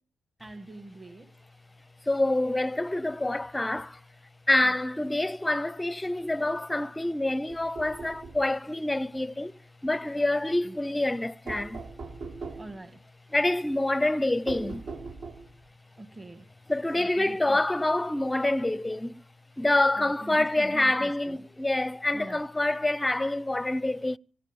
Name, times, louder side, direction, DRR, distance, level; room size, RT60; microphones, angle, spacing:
voice 1, 0.4-1.3 4.6-4.7 5.0-5.1 10.6-10.8 12.6-13.0 16.0-16.5 17.0-17.6 20.0-21.4 22.1-22.5, right 2 dB, 20° right, 1.8 m, -44 dB
voice 2, 2.1-4.0 4.5-9.5 9.8-11.8 13.3-14.9 16.7-19.2 19.6-24.2, left 2 dB, 10° left, 0.6 m, -27 dB
sound 1, 7.5-8.5 11.5-12.8 14.5-15.6, right 4 dB, 65° right, 5.0 m, -40 dB
25.0 x 9.0 x 5.3 m
cardioid pair, 90°, 0 cm